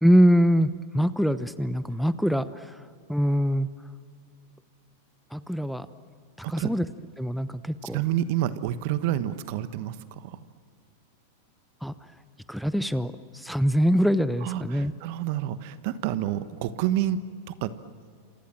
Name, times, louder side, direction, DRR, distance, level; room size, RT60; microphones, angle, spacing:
voice 1, 0.0-2.8 3.1-3.7 5.3-5.9 6.5-6.9 7.2-8.0 11.8-11.9 12.5-14.9, equal, ahead, 13 dB, 0.9 m, -23 dB
voice 2, 7.8-10.4 14.4-17.2 17.5-17.7, right 12 dB, 55° right, 13 dB, 1.3 m, -29 dB
28.5 x 27.0 x 7.5 m, 2.1 s
figure-of-eight pair, 95°, 0 cm